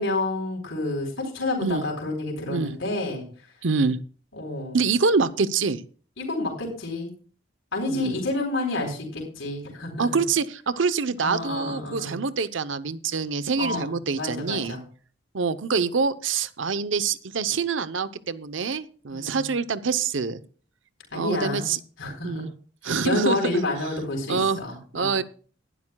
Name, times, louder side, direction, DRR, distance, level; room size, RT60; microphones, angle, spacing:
voice 1, 0.0-3.2 4.3-4.8 6.2-7.1 7.7-10.1 11.2-12.2 13.6-14.8 19.1-19.5 21.1-21.7 22.0-22.4 22.8-25.2, left 2 dB, 80° left, 0 dB, 4.1 m, -29 dB
voice 2, 3.6-4.0 4.7-5.8 7.9-8.2 10.0-14.8 15.3-20.4 21.1-21.8 22.2-22.5 22.8-23.6 24.3-24.6 24.9-25.2, right 5 dB, 75° right, 14 dB, 0.8 m, -25 dB
19.5 x 12.0 x 2.3 m, 0.41 s
head